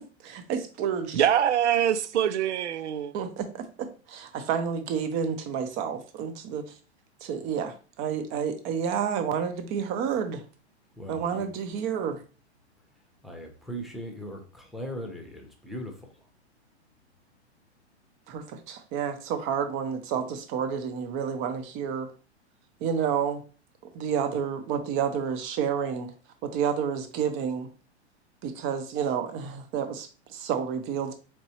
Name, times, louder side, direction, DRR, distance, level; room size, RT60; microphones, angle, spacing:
voice 1, 0.0-1.2 3.1-6.6 7.2-10.4 11.1-12.2 18.3-22.1 22.8-23.4 23.9-26.1 26.4-27.7 28.4-31.1, right 7 dB, 35° right, 0.8 m, -30 dB
voice 2, 1.1-3.1, right 9 dB, 80° right, 0.5 m, -24 dB
voice 3, 10.9-11.4 13.2-16.3, equal, ahead, 0.9 m, -39 dB
4.4 x 3.1 x 2.9 m
hypercardioid pair, 105°, 34 cm